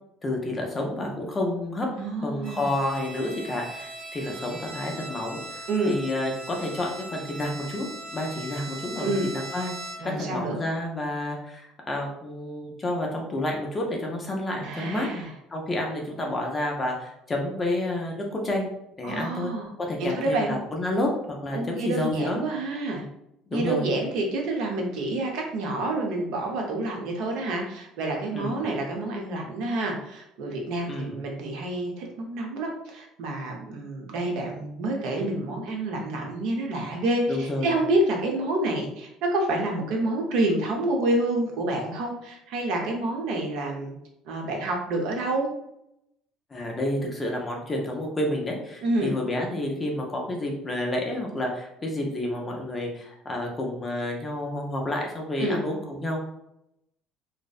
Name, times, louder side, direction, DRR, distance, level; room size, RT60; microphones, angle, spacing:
voice 1, 0.2-1.9 2.2-7.9 8.1-9.7 10.0-15.1 15.5-18.7 19.0-19.5 19.8-22.4 23.5-23.9 28.3-28.5 30.9-31.2 37.3-37.7 46.5-56.2, left 1 dB, 15° left, 0 dB, 0.4 m, -30 dB
voice 2, 1.9-2.7 5.7-6.0 9.0-9.3 10.0-10.6 14.6-15.3 19.0-19.7 20.0-20.5 21.5-23.0 23.5-43.9 44.2-45.5 48.8-49.2 55.4-55.6, right 2 dB, 65° right, 1 dB, 0.6 m, -28 dB
Bowed string instrument, 2.4-10.3, right 1 dB, 45° right, 1.0 m, -40 dB
2.6 x 2.1 x 2.3 m, 0.80 s
cardioid pair, 165°, 0 cm